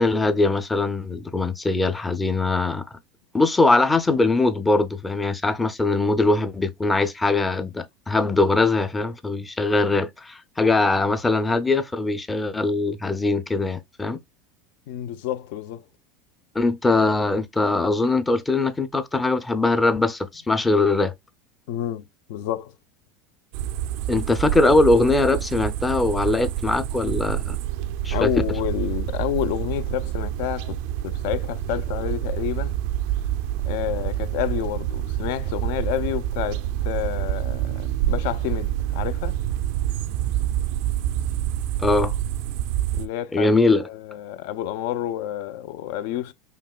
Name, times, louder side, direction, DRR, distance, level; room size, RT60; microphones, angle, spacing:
voice 1, 0.0-3.0 3.3-14.2 16.5-21.1 24.1-27.6 28.0-28.3 41.8-42.1 43.3-43.9, left 2 dB, 10° left, 0.5 m, -21 dB
voice 2, 14.9-15.8 21.7-22.7 28.1-30.8 31.0-32.8 33.6-39.4 42.9-43.5 43.8-46.3, left 12 dB, 70° left, 0.4 m, -29 dB
sound 1, 23.5-43.1, right 12 dB, 65° right, 0.3 m, -27 dB
5.2 x 2.9 x 2.2 m
supercardioid pair, 135°, 0 cm